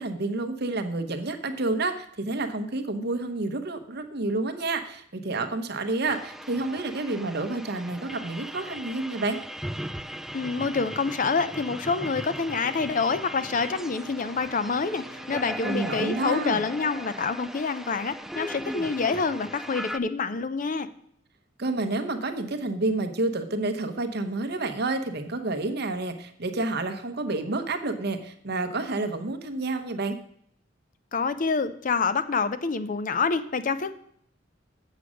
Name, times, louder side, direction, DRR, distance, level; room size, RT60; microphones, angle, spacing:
voice 1, 0.0-9.4 15.6-16.6 21.6-30.2, right 2 dB, 60° right, 7 dB, 1.0 m, -29 dB
sound 1, 6.1-20.0, equal, ahead, 0.3 m, -38 dB
voice 2, 10.3-20.9 31.1-34.0, left 4 dB, 45° left, 13 dB, 0.5 m, -27 dB
Bowed string instrument, 13.1-18.7, equal, 75° left, 3.7 m, -49 dB
7.7 x 7.3 x 6.3 m, 0.67 s
head